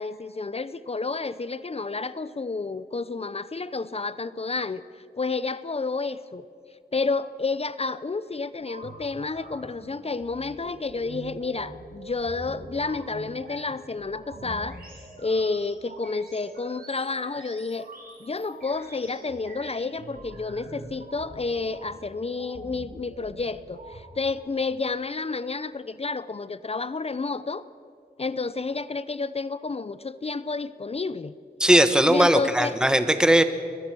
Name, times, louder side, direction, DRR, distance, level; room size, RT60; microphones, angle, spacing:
voice 1, 0.0-4.8 5.2-6.4 6.9-14.8 15.2-17.9 18.2-27.6 28.2-31.3 32.1-32.8, left 3 dB, 35° left, 15 dB, 0.6 m, -30 dB
sound 1, 8.6-24.4, right 2 dB, 60° right, 6.4 m, -44 dB
voice 2, 31.6-33.4, right 1 dB, 5° right, 10 dB, 1.2 m, -18 dB
22.0 x 20.5 x 6.1 m, 2.3 s
wide cardioid pair, 90°, 17 cm